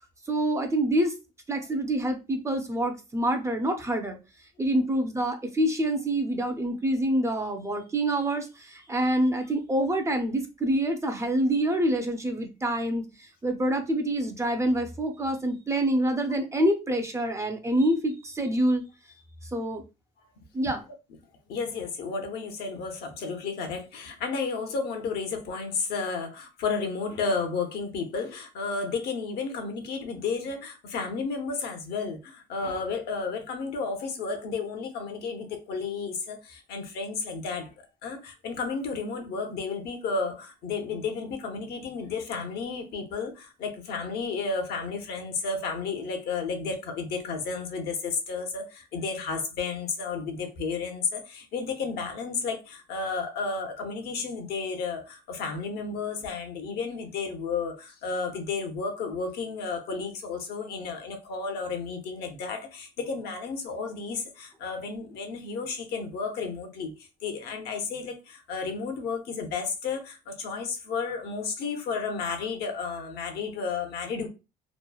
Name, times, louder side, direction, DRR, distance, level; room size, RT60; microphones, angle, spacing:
voice 1, 0.3-1.1 1.5-4.2 4.6-18.8 19.5-19.8 20.5-20.8, right 1 dB, 15° right, 0.4 m, -26 dB
voice 2, 21.5-37.7 38.0-66.9 67.2-74.3, left 4 dB, 75° left, 0.8 m, -32 dB
3.0 x 2.1 x 2.2 m
cardioid pair, 110°, 17 cm